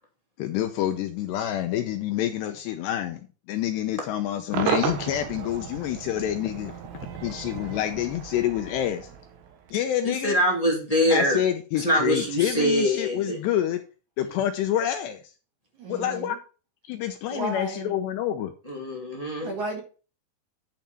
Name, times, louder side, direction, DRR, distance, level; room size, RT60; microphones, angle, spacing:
voice 1, 0.4-6.8 7.2-9.1 9.7-10.4 11.1-13.8 14.2-15.2 15.9-16.4 16.9-18.5, left 11 dB, 80° left, 2.6 m, -27 dB
Cheering / Crowd / Fireworks, 4.5-9.8, right 8 dB, 85° right, 3.9 m, -33 dB
voice 2, 10.0-11.4 11.7-13.4 18.6-19.5, equal, 15° left, 1.2 m, -24 dB
voice 3, 15.8-16.4 17.3-17.9 19.4-19.8, right 2 dB, 55° right, 2.5 m, -33 dB
10.5 x 5.8 x 4.3 m
omnidirectional pair, 5.4 m